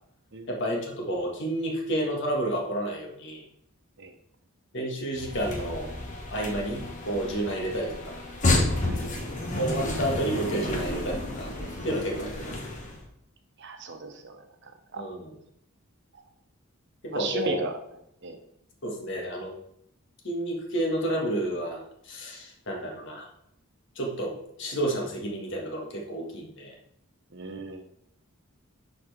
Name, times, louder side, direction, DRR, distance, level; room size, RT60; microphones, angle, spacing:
voice 1, 0.5-3.4 4.7-5.9 6.3-8.2 9.6-11.5 11.8-12.5 15.0-15.4 17.0-17.7 18.8-19.5 20.2-23.3 24.0-26.7, right 1 dB, 60° left, 0 dB, 1.8 m, -30 dB
sound 1, 5.1-13.0, left 2 dB, 35° left, 1.4 m, -31 dB
voice 2, 8.8-9.2 12.1-12.3 13.6-15.0 17.1-17.7 18.2-18.4 27.3-27.8, right 3 dB, 55° right, 5 dB, 1.0 m, -36 dB
10.5 x 4.4 x 3.5 m, 0.74 s
head